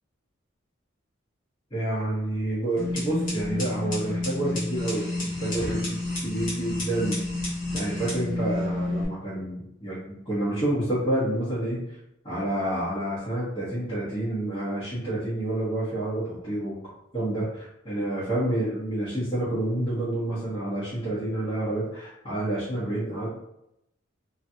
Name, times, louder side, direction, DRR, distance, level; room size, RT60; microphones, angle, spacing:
voice 1, 1.7-7.2 7.7-11.8 12.2-16.7 17.1-23.3, right 1 dB, 25° left, -13 dB, 1.2 m, -29 dB
sound 1, 2.8-9.0, left 2 dB, 40° left, 1.3 m, -30 dB
3.0 x 2.8 x 2.7 m, 0.82 s
head